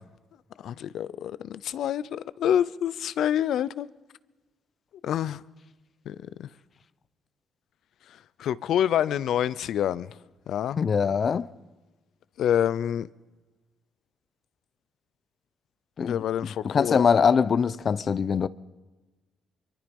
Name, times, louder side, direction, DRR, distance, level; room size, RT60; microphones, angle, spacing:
voice 1, 0.6-3.9 5.0-5.4 6.1-6.5 8.4-10.1 10.5-10.8 12.4-13.1 16.0-17.0, left 10 dB, 75° left, 0.7 m, -27 dB
voice 2, 10.8-11.5 16.0-16.2 16.6-18.5, left 6 dB, 50° left, 0.8 m, -22 dB
24.5 x 23.0 x 5.4 m
cardioid pair, 90°, 0 cm